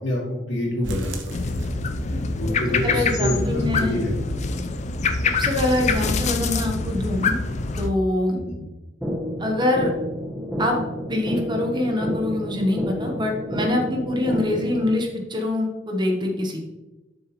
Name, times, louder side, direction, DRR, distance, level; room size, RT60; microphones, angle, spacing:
voice 1, 0.5-1.2 1.4-1.5 2.1-4.1 4.4-4.5 8.3-8.6, equal, 70° left, -3 dB, 2.6 m, -26 dB
sound 1, 0.8-2.4 2.7-2.8 3.2-3.3 3.7-3.8, right 1 dB, 70° right, 1.0 m, -36 dB
sound 2, 1.3-7.9, left 4 dB, 35° left, 0.5 m, -25 dB
voice 2, 2.8-4.0 5.4-7.4 7.8-8.4 9.4-9.9 10.6-10.8 11.1-16.7, left 1 dB, 25° right, 2 dB, 1.0 m, -24 dB
sound 3, 9.0-15.0, equal, 5° right, 1.2 m, -29 dB
7.6 x 6.5 x 3.1 m, 1.0 s
head